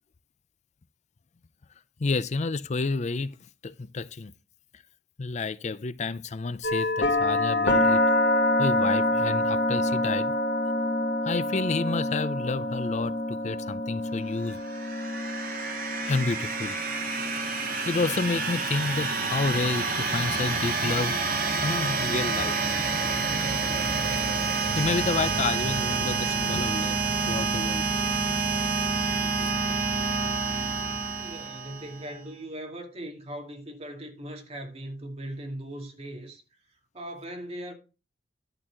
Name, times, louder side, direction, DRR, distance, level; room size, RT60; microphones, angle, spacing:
voice 1, 2.0-3.4 3.6-4.3 4.7-4.8 5.2-8.0 8.6-10.3 11.2-14.6 16.0-16.8 17.9-22.6 24.3-27.9 29.2-29.8, left 3 dB, 40° left, 0.5 m, -30 dB
sound 1, 6.6-20.5, left 1 dB, 85° left, 1.9 m, -27 dB
sound 2, 14.5-32.1, right 4 dB, 55° right, 2.4 m, -28 dB
voice 2, 31.2-36.4 36.9-37.7, right 1 dB, 35° right, 2.3 m, -39 dB
11.0 x 4.1 x 7.5 m
head